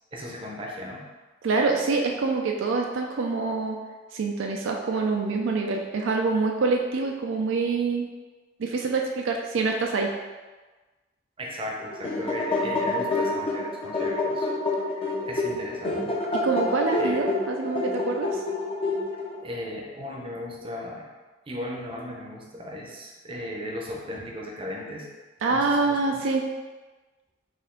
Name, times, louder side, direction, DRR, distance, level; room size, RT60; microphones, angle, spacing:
voice 1, 0.1-1.0 11.4-16.2 17.0-17.2 19.4-21.1 21.5-25.1 25.5-26.2, left 1 dB, 30° right, -1 dB, 0.6 m, -36 dB
voice 2, 1.4-3.8 4.1-8.1 8.6-10.1 16.4-18.4 25.4-26.4, right 4 dB, 75° right, 1 dB, 0.4 m, -26 dB
sound 1, 11.8-19.4, left 2 dB, 30° left, 0.6 m, -28 dB
4.2 x 2.5 x 3.7 m, 1.3 s
head